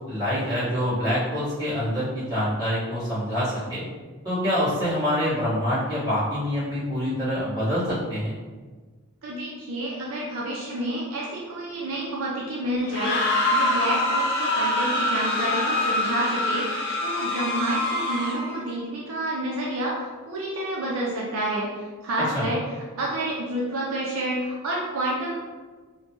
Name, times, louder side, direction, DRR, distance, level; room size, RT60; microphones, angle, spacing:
voice 1, 0.1-3.8 4.2-8.3 22.3-22.5, equal, 15° right, -13 dB, 1.5 m, -26 dB
voice 2, 9.2-25.3, right 1 dB, 70° right, -4 dB, 0.5 m, -29 dB
sound 1, 12.8-18.6, left 1 dB, 50° left, 0.5 m, -25 dB
3.1 x 2.1 x 2.9 m, 1.4 s
head